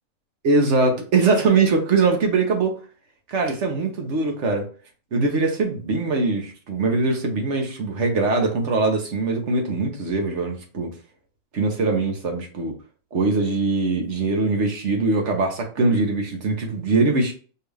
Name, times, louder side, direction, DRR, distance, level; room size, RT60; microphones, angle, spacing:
voice 1, 0.4-2.8 3.3-4.7 5.1-10.9 11.5-12.7 13.1-17.3, right 3 dB, 55° right, 2 dB, 1.1 m, -22 dB
4.6 x 2.4 x 3.2 m, 0.38 s
omnidirectional pair, 1.6 m